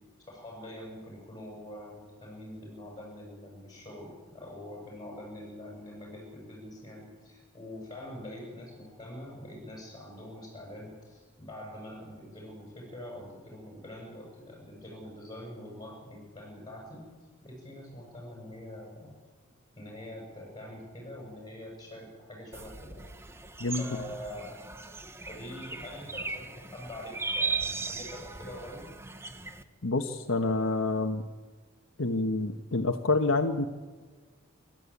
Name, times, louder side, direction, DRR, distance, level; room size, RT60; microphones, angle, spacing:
voice 1, 0.3-17.1 17.4-19.2 19.8-23.1 23.8-24.7 25.3-28.9, left 1 dB, 20° left, -2 dB, 6.9 m, -44 dB
sound 1, 22.5-29.6, right 4 dB, 10° right, 1.0 m, -37 dB
voice 2, 29.8-31.2 32.0-33.7, left 3 dB, 80° left, 5 dB, 1.2 m, -27 dB
28.0 x 12.0 x 8.4 m, 1.4 s
head